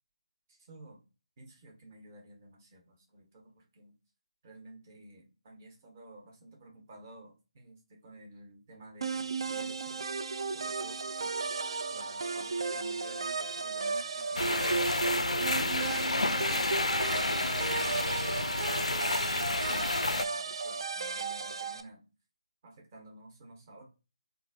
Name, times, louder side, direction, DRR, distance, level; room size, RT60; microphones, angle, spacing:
voice 1, 0.5-1.0 1.4-3.9 4.4-10.1 10.5-11.3 11.9-14.7 15.1-16.9 17.3-18.6 18.9-22.1 22.6-23.9, right 2 dB, 30° right, 0 dB, 1.1 m, -53 dB
sound 1, 9.0-21.8, right 4 dB, 50° right, 0.4 m, -34 dB
sound 2, 14.4-20.2, left 2 dB, 80° left, 0.4 m, -30 dB
3.7 x 2.4 x 2.6 m, 0.31 s
figure-of-eight pair, 155°, 3 cm